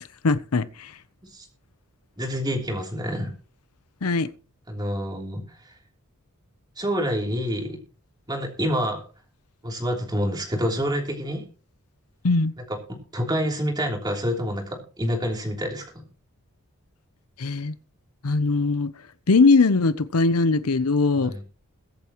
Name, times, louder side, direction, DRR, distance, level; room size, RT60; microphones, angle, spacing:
voice 1, 0.2-0.9 4.0-4.3 12.2-12.5 17.4-17.7 18.2-18.9 19.3-21.3, left 3 dB, 85° left, 0.7 m, -20 dB
voice 2, 2.2-3.3 4.7-5.7 6.8-7.8 8.3-9.0 9.6-11.4 12.7-16.0 21.2-21.4, equal, 20° right, 3.2 m, -27 dB
22.0 x 8.4 x 3.0 m
head